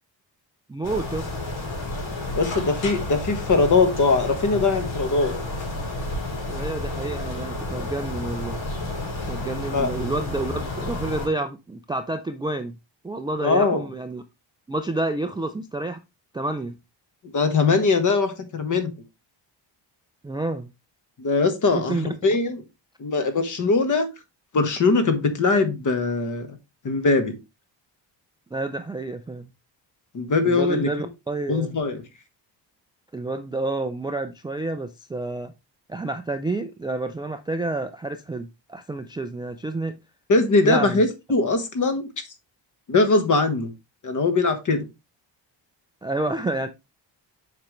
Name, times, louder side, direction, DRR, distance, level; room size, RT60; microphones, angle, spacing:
voice 1, 0.7-1.3 6.5-8.6 9.3-12.7 13.0-14.2 14.7-16.0 16.3-16.8 20.2-20.7 21.7-22.1 28.5-29.5 30.4-31.8 33.1-35.5 35.9-40.0 40.6-41.0 46.0-46.7, right 2 dB, 10° right, 0.3 m, -29 dB
sound 1, 0.8-11.3, left 2 dB, 80° left, 4.5 m, -31 dB
voice 2, 2.4-5.3 9.7-9.9 13.4-13.8 17.3-18.9 21.2-22.6 23.0-24.1 24.5-26.5 26.8-27.4 30.1-30.9 31.5-32.0 40.3-42.1 42.9-43.7 44.0-44.8, left 3 dB, 40° left, 1.3 m, -21 dB
7.3 x 5.2 x 3.1 m
wide cardioid pair, 155°, 45 cm